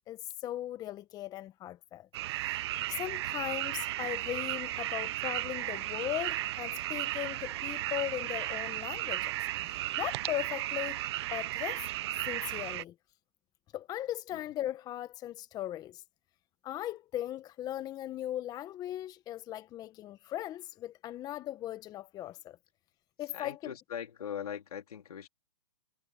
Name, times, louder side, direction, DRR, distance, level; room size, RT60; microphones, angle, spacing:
voice 1, 0.1-2.1 2.4-2.6 2.9-11.0 11.3-11.9 12.2-12.9 13.7-16.0 16.6-22.6 23.2-23.6, left 13 dB, 20° left, 1.1 m, -38 dB
sound 1, 2.1-12.8, right 16 dB, 45° right, 0.8 m, -35 dB
voice 2, 23.3-25.3, left 8 dB, 70° left, 3.8 m, -40 dB
hypercardioid pair, 140°, 19 cm